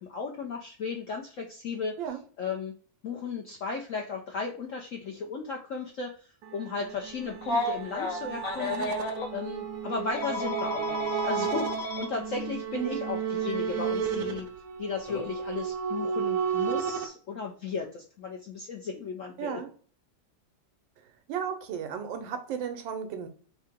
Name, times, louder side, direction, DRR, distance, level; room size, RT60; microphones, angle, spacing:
voice 1, 0.0-2.0 2.4-2.7 3.0-8.9 9.3-14.5 14.8-19.6, left 5 dB, 70° left, 0 dB, 0.7 m, -35 dB
sound 1, 6.4-17.1, right 7 dB, 70° right, 1.0 m, -33 dB
Telephone, 7.4-9.3 10.2-12.1 13.4-13.6 15.1-15.3, left 1 dB, 55° left, 1.1 m, -32 dB
voice 2, 19.4-19.7 21.3-23.3, right 8 dB, 85° right, 7 dB, 1.5 m, -34 dB
3.7 x 2.8 x 3.4 m, 0.43 s
omnidirectional pair, 2.0 m